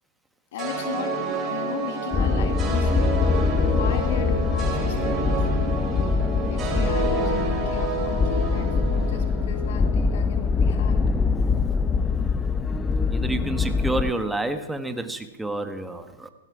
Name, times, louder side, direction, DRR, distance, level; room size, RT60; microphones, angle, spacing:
voice 1, 0.5-3.1 3.6-5.3 6.5-11.1, left 8 dB, 60° left, 5 dB, 2.0 m, -36 dB
sound 1, 0.6-9.9, right 3 dB, 25° right, 4.4 m, -29 dB
sound 2, 2.1-14.1, left 4 dB, 15° left, 0.7 m, -23 dB
voice 2, 13.1-16.3, right 2 dB, 5° right, 8 dB, 1.4 m, -29 dB
17.0 x 16.5 x 4.9 m, 1.1 s
hypercardioid pair, 120°, 0 cm